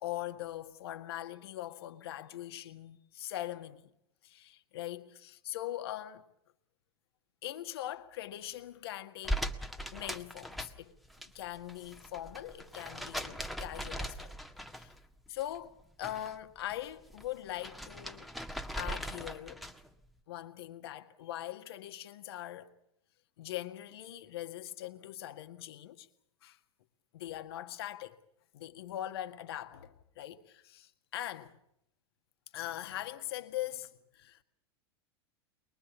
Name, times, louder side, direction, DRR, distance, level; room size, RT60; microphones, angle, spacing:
voice 1, 0.0-3.9 4.2-6.3 7.4-9.4 9.9-14.3 14.7-15.0 15.3-18.3 18.8-19.6 20.3-22.7 23.4-26.1 26.4-26.6 27.1-28.2 28.5-31.6 32.5-34.4, left 13 dB, 65° left, 1.8 m, -41 dB
sound 1, 9.2-11.3 11.6-15.1 15.4-16.4 16.7-19.9, equal, ahead, 1.7 m, -40 dB
23.5 x 22.5 x 7.2 m
figure-of-eight pair, 85°, 14 cm